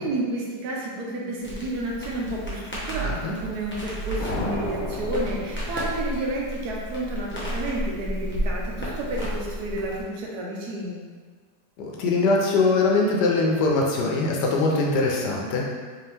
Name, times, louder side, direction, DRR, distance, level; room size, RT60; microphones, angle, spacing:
voice 1, 0.0-11.0, right 1 dB, 75° right, -3 dB, 1.3 m, -31 dB
Crackle, 1.4-10.0, equal, 10° left, 0.5 m, -32 dB
voice 2, 3.0-3.3 11.8-15.6, left 3 dB, 90° left, -1 dB, 1.3 m, -22 dB
sound 1, 4.2-6.4, left 2 dB, 65° left, 1.1 m, -33 dB
4.1 x 2.8 x 3.4 m, 1.5 s
omnidirectional pair, 1.8 m